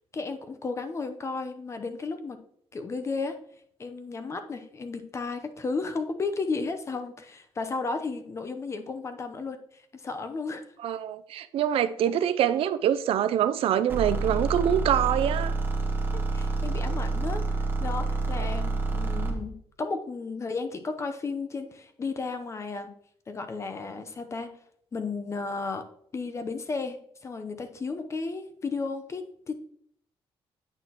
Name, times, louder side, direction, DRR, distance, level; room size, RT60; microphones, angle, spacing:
voice 1, 0.1-2.4 2.7-3.4 3.8-10.6 16.1-22.9 23.3-24.5 24.9-25.9 26.1-27.0 27.2-29.5, left 4 dB, 30° left, 0.7 m, -34 dB
voice 2, 10.8-15.5, right 10 dB, 70° right, 0.4 m, -25 dB
sound 1, 13.9-19.4, right 3 dB, 20° right, 1.2 m, -28 dB
8.9 x 6.1 x 2.9 m
cardioid pair, 140°, 10 cm